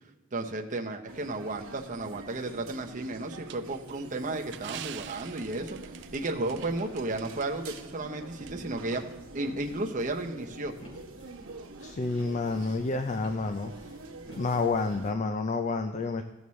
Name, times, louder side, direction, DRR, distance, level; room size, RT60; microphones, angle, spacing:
voice 1, 0.3-5.8 6.1-9.0 9.3-10.7, right 2 dB, 40° right, 2 dB, 0.8 m, -33 dB
sound 1, 1.1-15.1, right 3 dB, 75° right, 1.1 m, -45 dB
sound 2, 3.5-7.5 7.8-7.9 8.5-8.6, right 11 dB, 55° right, 0.4 m, -45 dB
sound 3, 4.9-15.1, equal, 75° left, 3.2 m, -54 dB
voice 2, 11.8-13.7 14.4-16.2, left 3 dB, 35° left, 7 dB, 0.4 m, -29 dB
16.0 x 7.0 x 3.2 m, 1.1 s
head